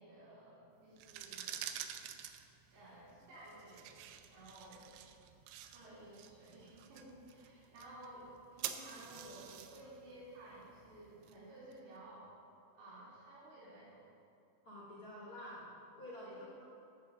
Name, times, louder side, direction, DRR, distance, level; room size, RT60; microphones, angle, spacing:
voice 1, 0.0-1.6 2.7-4.9 5.7-12.3 12.7-14.0 15.4-15.5 16.2-16.4, right 1 dB, 65° right, -10 dB, 4.6 m, -55 dB
sound 1, 0.9-11.8, right 10 dB, 80° right, 2.6 m, -49 dB
voice 2, 14.6-15.7 16.0-16.7, left 1 dB, 80° left, -7 dB, 0.8 m, -49 dB
13.5 x 5.0 x 6.8 m, 2.5 s
omnidirectional pair, 5.2 m